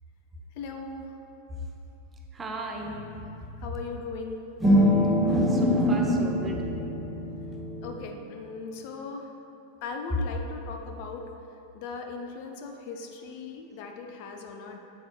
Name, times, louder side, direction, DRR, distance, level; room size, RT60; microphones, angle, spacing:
voice 1, 0.6-1.1 3.6-4.4 7.8-9.3 9.8-11.2 11.7-14.8, left 4 dB, 45° left, 4 dB, 0.5 m, -38 dB
voice 2, 2.3-3.0 5.2-6.6, equal, 20° right, 1 dB, 0.7 m, -27 dB
sound 1, 2.8-3.9 4.6-7.9, equal, 5° left, 1.3 m, -26 dB
7.8 x 7.3 x 2.2 m, 2.9 s
figure-of-eight pair, 90°, 0 cm